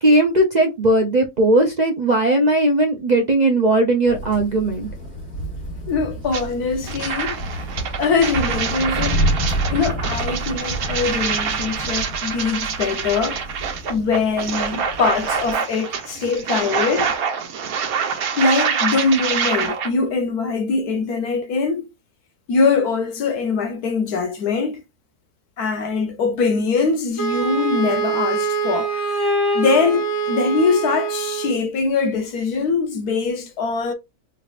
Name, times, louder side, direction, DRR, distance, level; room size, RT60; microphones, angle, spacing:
voice 1, 0.0-4.9, right 1 dB, 50° right, 0.5 m, -17 dB
sound 1, 4.1-15.5, right 1 dB, 45° left, 2.7 m, -29 dB
voice 2, 5.9-7.6 8.0-9.2 9.5-13.4 13.9-17.1 18.4-21.9 22.5-24.8 25.6-29.2 29.5-33.9, left 4 dB, 85° left, 1.4 m, -22 dB
sound 2, 6.3-6.4 6.8-19.9, right 6 dB, 70° right, 1.3 m, -25 dB
Wind instrument woodwind instrument, 27.2-31.6, right 4 dB, 60° left, 1.5 m, -23 dB
4.6 x 3.2 x 2.5 m
omnidirectional pair, 1.6 m